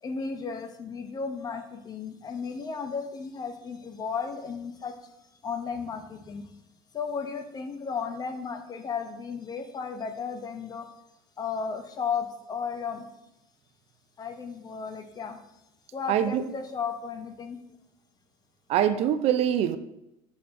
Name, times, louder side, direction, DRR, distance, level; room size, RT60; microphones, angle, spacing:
voice 1, 0.0-5.0 5.4-6.4 6.9-10.9 11.4-13.1 14.2-15.4 15.9-17.6, left 5 dB, 35° left, 8 dB, 0.7 m, -34 dB
voice 2, 16.1-16.5 18.7-19.8, right 10 dB, 60° right, 12 dB, 0.4 m, -24 dB
7.0 x 6.7 x 2.6 m, 0.87 s
cardioid pair, 115°, 12 cm